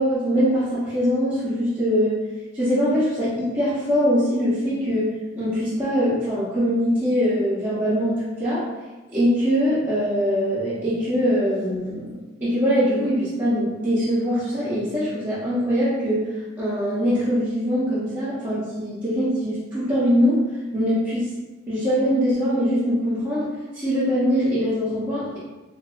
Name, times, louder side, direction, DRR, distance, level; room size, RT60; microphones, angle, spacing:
voice 1, 0.0-2.2 2.5-5.1 5.4-8.6 9.1-12.1 12.4-16.3 16.6-20.4 20.7-21.3 21.7-25.4, equal, 10° right, -14 dB, 0.8 m, -22 dB
2.9 x 2.6 x 2.4 m, 1.2 s
head